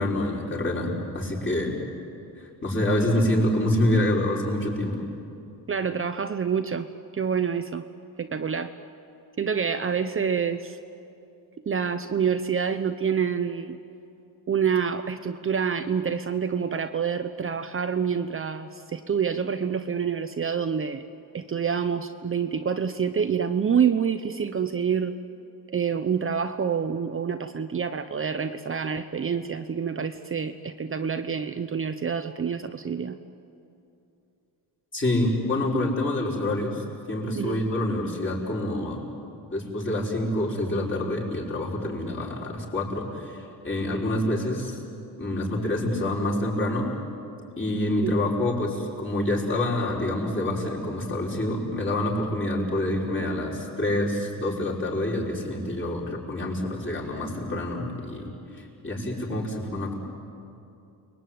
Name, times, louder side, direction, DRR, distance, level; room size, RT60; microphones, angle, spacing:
voice 1, 0.0-1.7 2.6-5.1 34.9-39.0 39.5-44.8 45.2-46.9 47.6-58.3 58.5-60.0, left 1 dB, 30° left, -3 dB, 6.1 m, -27 dB
voice 2, 5.7-6.9 7.1-7.8 8.2-8.7 9.4-10.8 11.7-13.8 14.5-21.0 21.3-25.1 25.7-33.2 37.4-37.6 48.0-48.2, right 7 dB, 35° right, 8 dB, 0.8 m, -27 dB
30.0 x 21.5 x 9.4 m, 2.7 s
cardioid pair, 120°, 39 cm